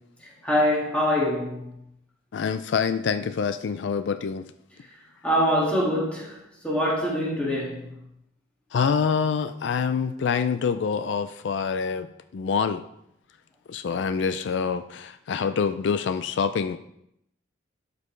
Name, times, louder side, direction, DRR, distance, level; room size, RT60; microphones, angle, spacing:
voice 1, 0.2-1.7 4.8-4.9 5.2-7.9, equal, 5° left, -6 dB, 1.9 m, -25 dB
voice 2, 2.3-4.4 8.7-12.8 13.7-16.8, left 6 dB, 70° left, 10 dB, 0.4 m, -26 dB
12.0 x 5.3 x 3.2 m, 0.76 s
head